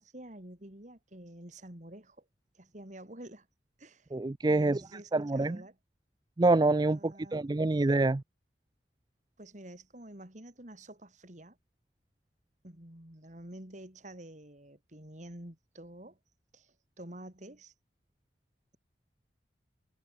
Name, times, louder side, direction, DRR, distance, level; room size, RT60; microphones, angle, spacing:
voice 1, 0.0-2.3 2.6-3.5 3.8-4.1 4.5-5.8 6.9-7.4 9.4-11.6 12.6-16.2 16.5-17.7, right 1 dB, 40° right, 3.6 m, -49 dB
voice 2, 4.1-4.8 5.1-5.6 6.4-8.2, right 2 dB, 25° right, 0.4 m, -26 dB
head